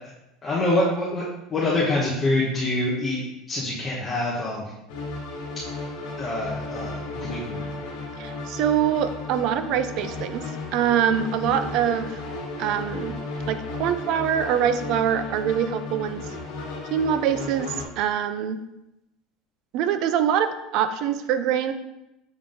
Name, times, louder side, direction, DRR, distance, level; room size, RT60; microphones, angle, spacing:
voice 1, 0.4-1.2 1.5-3.2 3.5-4.6 6.2-7.6, left 2 dB, 25° left, -6 dB, 1.1 m, -25 dB
sound 1, 4.9-17.8, left 3 dB, 75° left, 1.4 m, -34 dB
voice 2, 8.2-10.4 10.7-12.1 12.6-13.1 13.5-16.2 16.9-18.6 19.7-21.7, right 9 dB, 60° right, 10 dB, 0.5 m, -24 dB
7.1 x 3.5 x 3.8 m, 0.89 s
cardioid pair, 140°, 0 cm